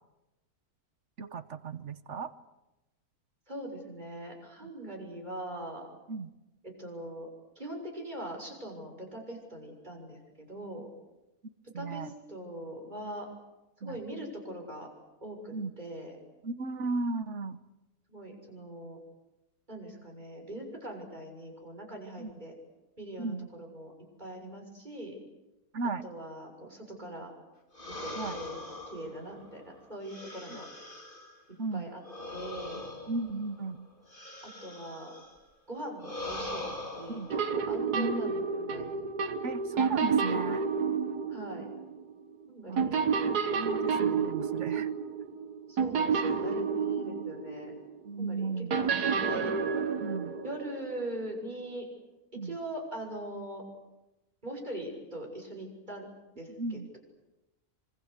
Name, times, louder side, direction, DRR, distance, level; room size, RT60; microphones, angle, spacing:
voice 1, 1.2-2.3 4.6-4.7 6.1-6.3 11.7-12.1 13.8-14.0 15.5-15.7 16.4-17.6 22.2-22.3 23.2-23.5 25.7-26.0 28.2-28.4 30.5-30.6 31.6-31.9 33.1-33.9 37.1-37.3 37.9-38.2 39.4-40.6 42.7-42.9 43.5-44.9 48.0-48.8 50.0-50.3 52.4-52.6 56.6-56.9, right 3 dB, 50° right, 12 dB, 1.4 m, -35 dB
voice 2, 3.5-5.9 6.6-7.3 7.6-10.9 11.8-13.3 13.8-14.9 15.2-16.2 18.1-19.0 19.7-22.5 23.0-23.9 24.2-25.2 25.8-27.3 27.9-28.6 28.9-30.7 31.7-32.0 32.3-32.8 34.4-35.1 35.7-39.0 41.3-41.7 42.5-43.1 45.7-47.7 48.2-49.5 50.4-51.9 52.3-53.6 54.4-56.1 56.4-57.0, right 1 dB, 30° right, 2 dB, 6.8 m, -41 dB
sound 1, 27.7-31.4 32.0-35.4 36.0-37.4, left 1 dB, 30° left, 4.6 m, -42 dB
sound 2, 37.3-42.4 42.8-48.0 48.7-51.4, right 5 dB, 80° right, 1.8 m, -30 dB
26.5 x 25.5 x 8.2 m, 0.99 s
omnidirectional pair, 1.6 m